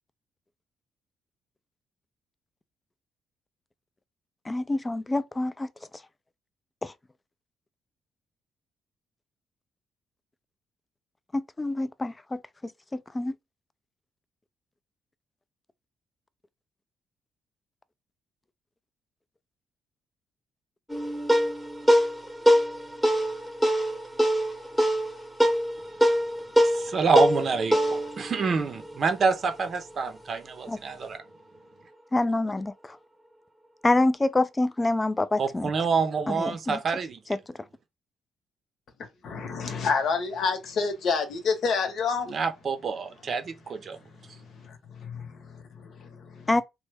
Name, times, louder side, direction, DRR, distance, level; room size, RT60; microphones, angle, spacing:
voice 1, 4.5-5.7 6.8-6.9 11.3-13.3 30.7-30.8 32.1-33.0 33.8-35.7 36.3-36.8 37.3-37.6 46.5-46.6, left 2 dB, 20° left, 0.3 m, -27 dB
sound 1, 20.9-29.7, equal, ahead, 0.9 m, -24 dB
voice 2, 26.6-31.2 35.4-37.2 42.3-44.0, right 5 dB, 50° right, 0.6 m, -27 dB
voice 3, 39.2-42.3 44.6-46.6, left 5 dB, 65° left, 0.9 m, -29 dB
3.1 x 2.1 x 3.3 m
cardioid pair, 90°, 0 cm